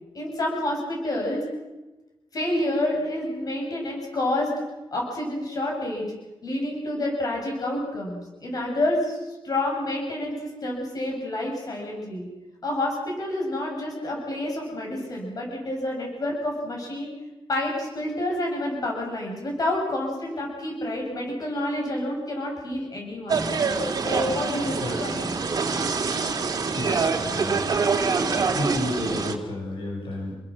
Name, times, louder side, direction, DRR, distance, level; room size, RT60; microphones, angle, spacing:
voice 1, 0.1-1.4 2.3-4.5 4.9-6.1 6.4-9.2 9.4-12.3 12.6-17.1 17.5-23.5 24.0-25.4, left 1 dB, 45° left, 0 dB, 7.6 m, -28 dB
sound 1, 23.3-29.4, right 4 dB, 45° right, 2.7 m, -25 dB
voice 2, 26.7-27.7 28.5-30.3, left 1 dB, 75° left, 0 dB, 6.7 m, -31 dB
29.0 x 22.0 x 6.5 m, 1.1 s
wide cardioid pair, 155°, 9 cm